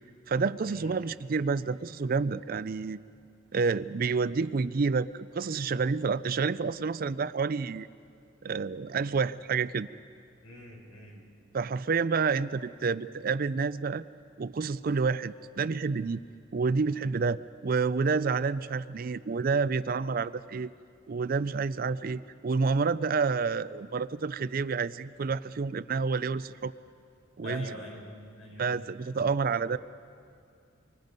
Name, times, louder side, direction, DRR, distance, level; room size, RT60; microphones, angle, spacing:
voice 1, 0.3-3.0 3.5-7.9 8.4-9.9 11.5-14.0 14.4-16.2 16.5-20.7 21.1-26.7 27.4-27.6 28.6-29.8, right 4 dB, 45° right, 16 dB, 0.4 m, -29 dB
voice 2, 10.4-11.3 27.4-29.2, left 1 dB, 85° left, -1 dB, 5.6 m, -44 dB
26.0 x 24.5 x 5.3 m, 2.3 s
head